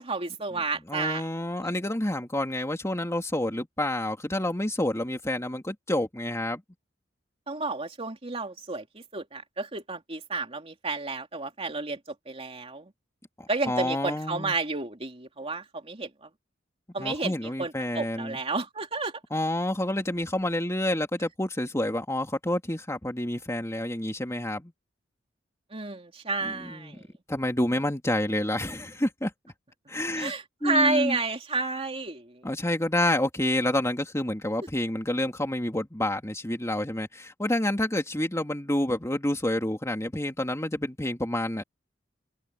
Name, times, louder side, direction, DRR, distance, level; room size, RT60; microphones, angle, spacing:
voice 1, 0.0-1.2 1.6-1.7 7.5-12.0 12.3-12.9 13.5-16.3 16.9-19.1 25.7-27.0 30.2-32.5, right 3 dB, 30° right, 3.1 m, -31 dB
voice 2, 0.9-6.6 13.4-14.5 17.0-18.4 19.3-24.7 26.4-27.0 27.3-29.3 29.9-30.3 30.6-31.2 32.4-41.6, left 1 dB, 15° left, 2.5 m, -28 dB
head